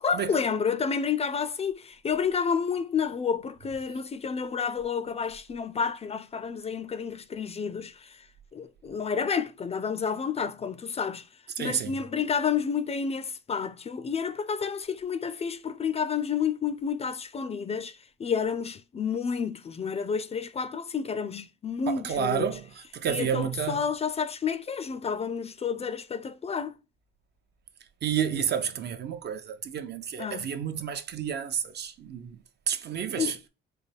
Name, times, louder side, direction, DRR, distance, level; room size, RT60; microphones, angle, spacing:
voice 1, 0.0-8.2 8.5-11.2 11.6-22.5 23.1-26.8 30.2-30.5 33.2-33.4, left 6 dB, 30° left, 0.3 m, -30 dB
voice 2, 11.6-11.9 21.9-23.9 28.0-32.4 32.7-33.4, right 8 dB, 55° right, 0.6 m, -30 dB
3.9 x 2.3 x 3.3 m
cardioid pair, 90°, 20 cm